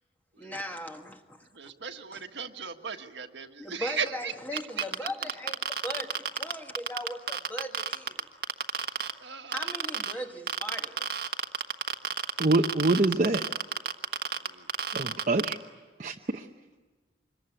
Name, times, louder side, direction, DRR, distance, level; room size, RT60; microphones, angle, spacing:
voice 1, 0.4-1.5 2.1-2.2 3.6-8.3 9.5-11.1, equal, 10° left, 1.6 m, -39 dB
voice 2, 1.5-4.3 8.7-9.7 14.4-14.7, right 6 dB, 80° right, 1.6 m, -37 dB
sound 1, 4.6-9.1 9.5-10.1 10.5-15.5, right 6 dB, 60° right, 1.3 m, -30 dB
voice 3, 12.4-13.5 14.9-15.6 16.0-16.5, right 2 dB, 45° right, 0.9 m, -25 dB
26.0 x 22.0 x 9.9 m
head